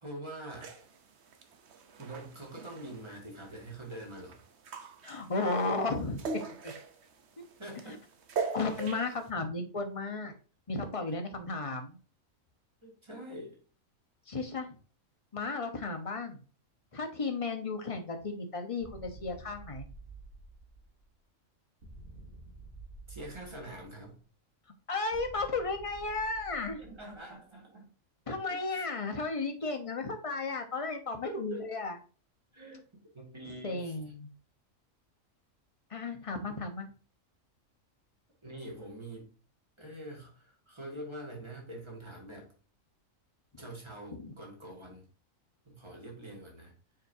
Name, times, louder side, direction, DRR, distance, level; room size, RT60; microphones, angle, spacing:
voice 1, 0.0-0.7 2.0-4.4 7.6-8.0 12.8-13.6 23.1-24.2 26.8-27.9 28.3-28.9 31.2-31.6 32.5-33.9 38.4-39.3 39.8-42.5 43.6-45.1 45.7-46.7, right 1 dB, 20° right, -1 dB, 2.2 m, -45 dB
sound 1, 0.5-9.3, right 4 dB, 55° right, 1.1 m, -42 dB
voice 2, 5.0-6.3 6.6-6.7 8.5-10.3 10.7-12.0 14.3-14.8 15.3-16.4 16.9-19.9 24.9-26.8 28.3-32.0 33.4-34.3 35.9-36.9 44.2-44.3, left 3 dB, 25° left, 5 dB, 1.0 m, -34 dB
sound 2, 18.8-21.1 21.8-24.1 25.1-27.4, right 2 dB, 80° right, 2.5 m, -50 dB
7.2 x 5.1 x 2.7 m, 0.38 s
omnidirectional pair, 1.4 m